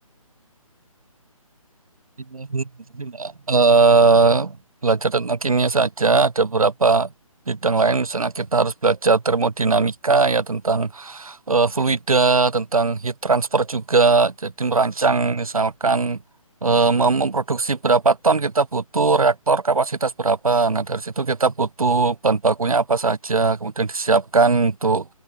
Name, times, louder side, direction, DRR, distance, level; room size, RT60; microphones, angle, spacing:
voice 1, 2.3-4.6 4.8-7.1 7.5-16.2 16.6-25.1, right 4 dB, 75° right, 0.8 m, -20 dB
open air
figure-of-eight pair, 145°, 18 cm